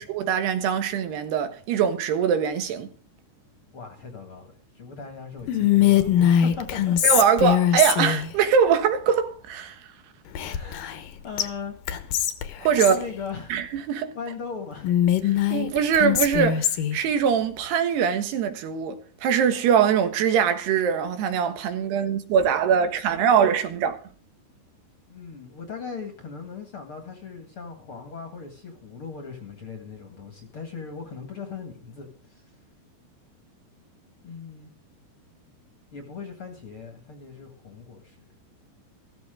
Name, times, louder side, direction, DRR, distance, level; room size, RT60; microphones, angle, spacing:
voice 1, 0.0-2.9 7.0-9.8 12.6-13.0 13.5-14.2 15.2-24.0, right 7 dB, 85° right, 3.6 m, -22 dB
voice 2, 3.7-7.0 10.5-11.7 12.7-13.5 14.1-14.9 25.1-32.4 34.2-34.7 35.9-38.2, left 5 dB, 45° left, 2.1 m, -38 dB
Whispering, 5.5-8.3 10.3-11.1 11.4-11.5 11.9-13.0 14.8-17.0, left 10 dB, 70° left, 2.6 m, -22 dB
15.0 x 14.0 x 3.8 m
omnidirectional pair, 4.6 m